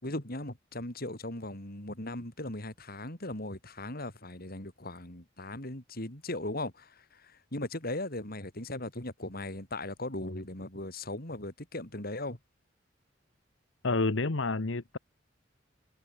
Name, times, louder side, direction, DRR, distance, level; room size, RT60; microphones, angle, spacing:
voice 1, 0.0-12.4, left 1 dB, 55° left, 5.4 m, -38 dB
voice 2, 13.8-15.0, left 3 dB, 85° left, 1.2 m, -29 dB
head